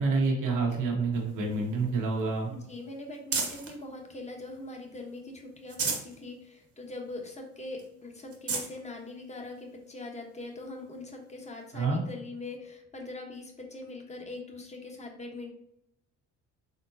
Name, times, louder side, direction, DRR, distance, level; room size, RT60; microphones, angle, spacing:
voice 1, 0.0-2.5 11.7-12.0, right 3 dB, 80° right, -1 dB, 1.2 m, -28 dB
sound 1, 1.1-3.8 4.3-5.1 5.5-6.2 6.6-6.7 7.1-7.2 7.8-7.9 8.2-8.7 9.5-9.6 11.4-11.5, right 4 dB, 50° right, 1.1 m, -35 dB
voice 2, 2.5-15.5, left 2 dB, 20° left, 1 dB, 1.1 m, -42 dB
4.3 x 3.6 x 2.8 m, 0.79 s
cardioid pair, 90°, 30 cm